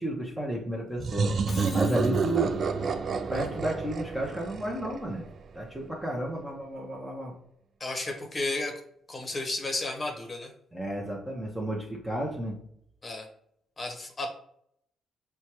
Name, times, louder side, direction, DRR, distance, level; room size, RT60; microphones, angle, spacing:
voice 1, 0.0-1.3 1.7-2.6 3.3-5.2 5.5-7.3 10.7-12.5, right 1 dB, 10° right, -2 dB, 0.8 m, -32 dB
sound 1, 1.0-5.6, right 5 dB, 50° right, 0.3 m, -30 dB
Shatter, 1.3-2.4, left 5 dB, 45° left, 0.3 m, -44 dB
voice 2, 7.8-8.7 9.1-10.5 13.0-13.3 13.8-14.3, left 2 dB, 30° left, 2 dB, 0.9 m, -32 dB
4.4 x 2.2 x 3.0 m, 0.70 s
cardioid pair, 90°, 0 cm